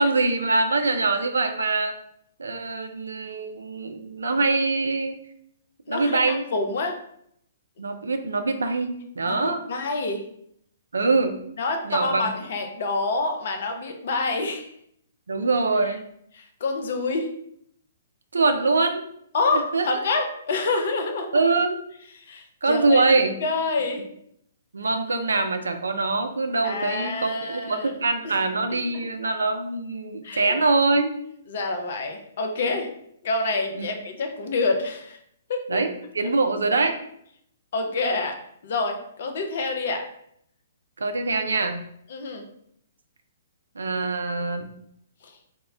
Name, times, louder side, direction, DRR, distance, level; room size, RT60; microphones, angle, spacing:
voice 1, 0.0-2.0 2.4-5.2 5.9-6.4 7.8-9.6 10.9-11.3 11.8-12.3 15.3-16.0 18.3-19.1 19.5-20.0 21.3-21.8 22.6-23.4 24.7-31.1 33.8-33.9 35.7-37.0 41.0-41.8 43.8-44.7, right 3 dB, 70° right, 7 dB, 0.3 m, -23 dB
voice 2, 5.9-6.9 9.3-10.2 11.6-14.7 16.3-17.3 19.3-21.3 22.1-23.1 23.4-24.1 26.6-27.9 28.2-28.4 28.7-29.1 30.2-30.6 31.5-32.9 33.2-35.2 35.5-35.8 36.2-36.3 37.7-38.4 38.6-40.0 42.1-42.4, left 3 dB, 50° left, 5 dB, 0.4 m, -27 dB
2.1 x 2.0 x 3.5 m, 0.71 s
figure-of-eight pair, 120°, 0 cm